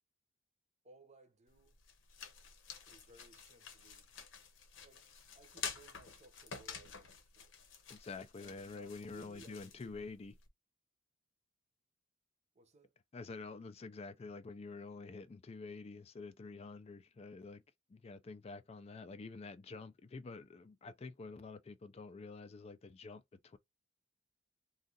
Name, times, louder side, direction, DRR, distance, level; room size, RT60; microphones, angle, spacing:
voice 1, 0.8-1.8 2.9-4.1 4.8-5.1 5.3-7.5 8.4-10.0 12.5-12.9, right 3 dB, 35° right, 0.7 m, -62 dB
sound 1, 1.5-10.5, left 6 dB, 75° left, 0.9 m, -50 dB
voice 2, 7.9-10.4 13.1-17.6 17.9-23.6, left 4 dB, 30° left, 0.3 m, -48 dB
2.6 x 2.4 x 3.7 m
head